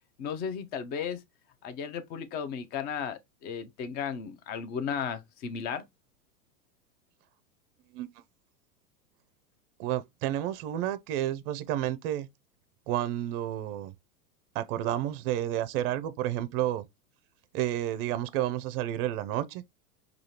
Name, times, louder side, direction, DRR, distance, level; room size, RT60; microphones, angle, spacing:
voice 1, 0.2-1.2 1.6-5.8, left 7 dB, 20° left, 0.4 m, -35 dB
voice 2, 9.8-12.3 12.9-13.9 14.5-16.9 17.5-19.6, right 12 dB, 40° right, 0.5 m, -30 dB
4.9 x 2.4 x 2.8 m
hypercardioid pair, 105°, 46 cm